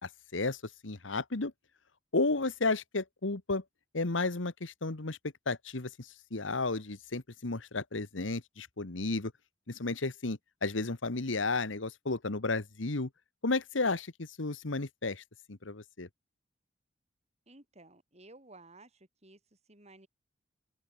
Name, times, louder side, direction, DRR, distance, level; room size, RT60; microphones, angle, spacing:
voice 1, 0.0-0.6 0.8-1.5 2.1-3.6 3.9-5.2 5.5-9.3 9.7-13.1 13.4-15.2 15.5-16.1, left 3 dB, 90° left, 1.5 m, -33 dB
voice 2, 17.5-19.4 19.7-20.1, right 2 dB, 35° right, 5.8 m, -55 dB
open air
head